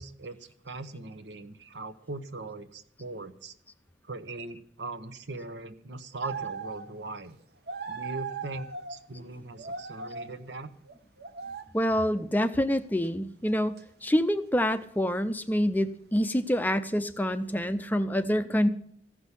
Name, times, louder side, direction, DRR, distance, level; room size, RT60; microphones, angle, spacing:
voice 1, 0.0-3.6 4.0-7.4 7.9-10.7, right 2 dB, 80° right, 10 dB, 1.1 m, -40 dB
sound 1, 6.2-7.0 7.3-7.4 7.7-9.0 9.6-10.3 10.9-11.7 13.0-13.1 13.8-13.9 14.3-14.4, right 5 dB, 60° right, 1.1 m, -38 dB
voice 2, 11.7-13.7 14.0-18.7, equal, 10° left, 10 dB, 0.5 m, -26 dB
15.0 x 6.3 x 9.8 m, 0.64 s
head